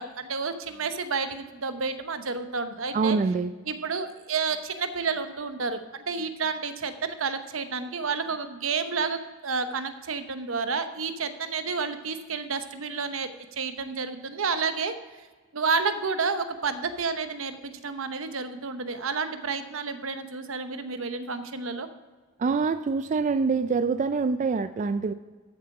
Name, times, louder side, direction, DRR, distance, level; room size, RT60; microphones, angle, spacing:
voice 1, 0.0-3.2 3.7-9.2 9.4-13.3 13.6-14.9 15.5-21.9, right 5 dB, 80° right, 9 dB, 0.9 m, -30 dB
voice 2, 2.9-3.5 22.4-25.1, right 4 dB, 35° right, 11 dB, 0.3 m, -25 dB
14.0 x 7.7 x 4.8 m, 1.3 s
head